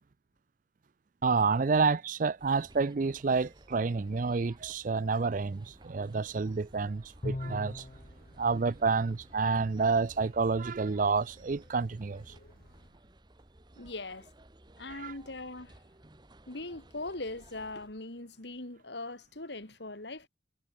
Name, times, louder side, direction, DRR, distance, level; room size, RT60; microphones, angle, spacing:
voice 1, 1.2-7.8 8.4-12.2 15.0-15.1, right 4 dB, 45° right, 0.5 m, -29 dB
sound 1, 2.4-17.9, right 1 dB, 25° right, 1.3 m, -56 dB
Bowed string instrument, 7.2-8.1, left 2 dB, 35° left, 0.7 m, -37 dB
sound 2, 7.4-12.9, equal, 50° left, 7.0 m, -59 dB
voice 2, 13.8-14.3 14.8-15.8 16.5-20.3, left 2 dB, 65° left, 2.6 m, -41 dB
head